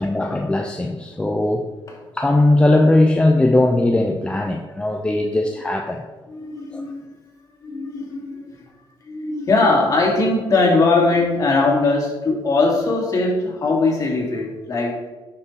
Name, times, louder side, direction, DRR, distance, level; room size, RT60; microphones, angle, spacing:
voice 1, 0.0-1.7 2.1-6.0 6.7-6.9, left 2 dB, 10° left, 3 dB, 0.7 m, -18 dB
voice 2, 6.3-7.0 7.6-8.6 9.1-15.0, left 3 dB, 40° left, -3 dB, 3.0 m, -20 dB
10.5 x 6.1 x 4.4 m, 1.2 s
cardioid pair, 120°, 9 cm